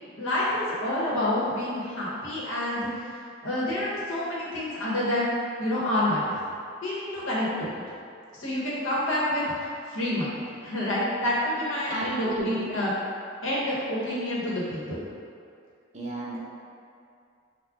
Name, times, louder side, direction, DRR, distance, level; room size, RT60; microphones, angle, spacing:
voice 1, 0.2-5.3 5.6-6.4 6.8-7.8 8.4-12.9 13.4-15.0, left 1 dB, 75° left, -6 dB, 1.0 m, -28 dB
voice 2, 11.9-12.8 15.9-16.4, right 2 dB, 35° right, -5 dB, 0.6 m, -32 dB
4.8 x 2.2 x 3.5 m, 2.4 s
head